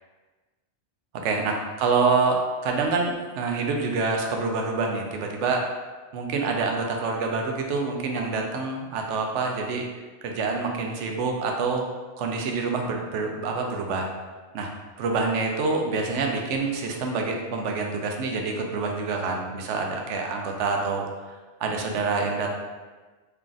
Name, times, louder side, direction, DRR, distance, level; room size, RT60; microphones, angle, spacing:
voice 1, 1.2-5.6 6.1-9.8 10.2-11.9 12.2-14.1 14.5-14.7 15.0-21.1 21.6-22.6, right 4 dB, 85° right, 2 dB, 0.9 m, -26 dB
3.8 x 3.3 x 2.4 m, 1.3 s
omnidirectional pair, 1.2 m